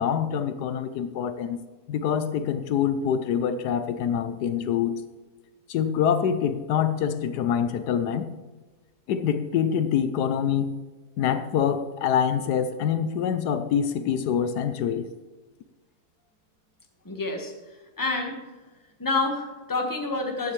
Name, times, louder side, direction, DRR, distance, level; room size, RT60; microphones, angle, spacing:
voice 1, 0.0-1.6 1.9-5.0 5.7-8.3 9.1-10.7 11.2-15.1, left 8 dB, 80° left, 11 dB, 1.2 m, -25 dB
voice 2, 17.0-18.4 19.0-20.5, left 3 dB, 15° left, 2 dB, 1.4 m, -28 dB
14.0 x 9.9 x 3.2 m, 1.2 s
omnidirectional pair, 1.7 m